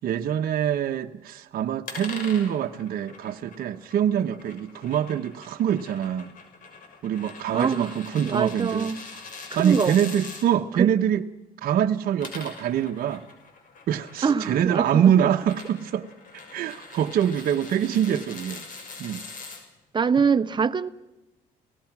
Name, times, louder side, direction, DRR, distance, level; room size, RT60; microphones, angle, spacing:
voice 1, 0.0-6.3 7.0-9.2 9.5-11.2 11.6-13.2 13.9-16.1 16.3-18.6 19.0-19.2, right 9 dB, 60° right, 1.0 m, -24 dB
sound 1, 1.9-10.5 12.0-19.6, left 4 dB, 50° left, 6.2 m, -43 dB
voice 2, 7.5-7.9 8.2-9.0 9.5-10.0 10.8-10.9 14.2-15.3 19.9-20.9, right 6 dB, 25° right, 1.0 m, -24 dB
30.0 x 18.5 x 6.0 m
cardioid pair, 110°, 17 cm